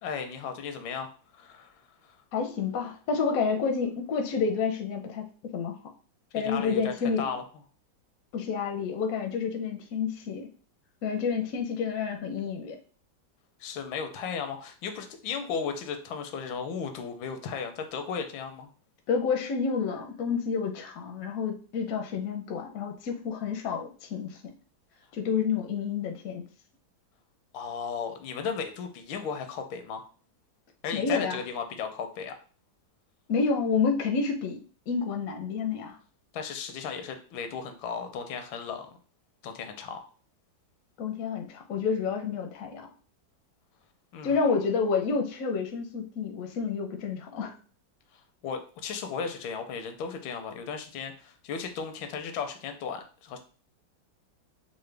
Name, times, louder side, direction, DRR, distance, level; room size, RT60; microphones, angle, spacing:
voice 1, 0.0-1.1 1.3-2.2 6.3-7.4 13.6-18.7 27.5-30.0 30.8-32.3 36.3-39.0 39.4-40.0 44.1-44.6 48.1-53.4, left 6 dB, 85° left, 6 dB, 1.3 m, -35 dB
voice 2, 2.3-5.3 5.5-5.8 6.3-7.3 8.3-10.5 11.0-12.8 19.1-24.5 25.1-26.4 30.9-31.4 33.3-36.0 41.0-42.9 44.2-47.5, left 5 dB, 65° left, 3 dB, 0.8 m, -29 dB
3.8 x 2.1 x 3.2 m, 0.39 s
omnidirectional pair, 2.1 m